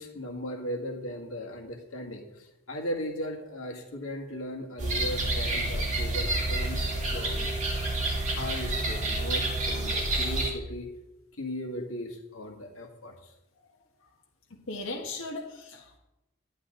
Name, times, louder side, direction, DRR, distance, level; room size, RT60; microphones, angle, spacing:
voice 1, 0.0-6.8 7.1-7.5 8.3-10.9 11.4-13.3, equal, 90° left, 3 dB, 1.9 m, -37 dB
sound 1, 4.8-10.5, right 2 dB, 35° right, 2.7 m, -29 dB
voice 2, 14.7-16.0, left 2 dB, 70° left, -2 dB, 1.5 m, -37 dB
11.5 x 10.5 x 3.9 m, 0.94 s
head